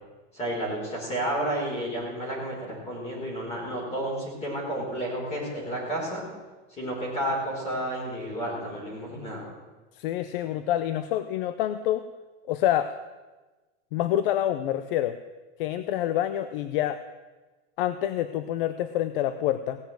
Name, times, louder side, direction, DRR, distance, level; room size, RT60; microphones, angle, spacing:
voice 1, 0.3-6.2 6.7-9.4, right 1 dB, 15° left, -4 dB, 4.9 m, -31 dB
voice 2, 10.0-12.0 12.5-12.9 13.9-15.2 15.6-17.0 17.8-19.8, left 12 dB, 50° left, 12 dB, 0.7 m, -27 dB
17.5 x 7.0 x 9.1 m, 1.2 s
supercardioid pair, 160°, 36 cm